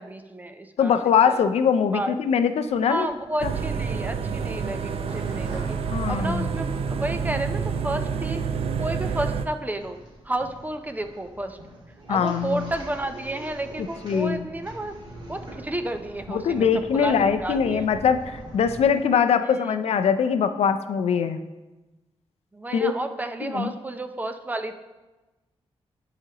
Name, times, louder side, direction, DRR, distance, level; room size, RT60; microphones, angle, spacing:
voice 1, 0.0-0.9 1.3-1.4 1.9-2.1 2.9-5.8 6.1-8.4 8.8-10.0 10.2-11.6 12.1-15.0 15.3-17.9 19.3-19.8 22.5-24.7, right 1 dB, 15° right, 7 dB, 0.5 m, -31 dB
voice 2, 0.8-3.1 3.4-3.5 5.9-6.5 12.1-12.7 14.0-14.4 16.3-21.4 22.7-22.9 23.4-23.7, left 7 dB, 80° left, 10 dB, 0.4 m, -22 dB
sound 1, 2.7-18.8, right 1 dB, 50° right, 2.6 m, -44 dB
sound 2, 3.4-9.5, right 6 dB, 65° right, 0.5 m, -28 dB
11.0 x 5.0 x 2.9 m, 1.1 s
wide cardioid pair, 110°, 11 cm